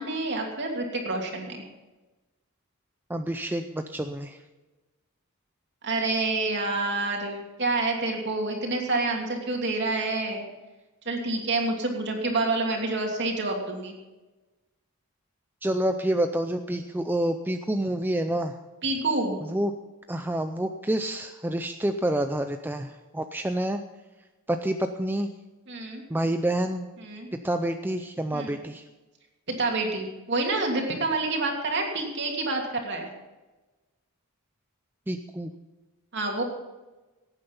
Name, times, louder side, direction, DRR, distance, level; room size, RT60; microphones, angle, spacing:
voice 1, 0.0-1.6 5.8-10.5 11.0-14.0 18.8-19.4 25.7-26.0 27.0-27.3 28.3-28.6 29.5-33.1 36.1-36.4, right 2 dB, 50° right, 1 dB, 2.9 m, -28 dB
voice 2, 3.1-4.4 15.6-18.6 19.4-19.7 20.1-23.8 24.5-25.3 26.1-26.9 27.4-28.8 35.1-35.5, right 1 dB, 10° right, 7 dB, 0.5 m, -28 dB
17.5 x 9.1 x 5.5 m, 1.2 s
head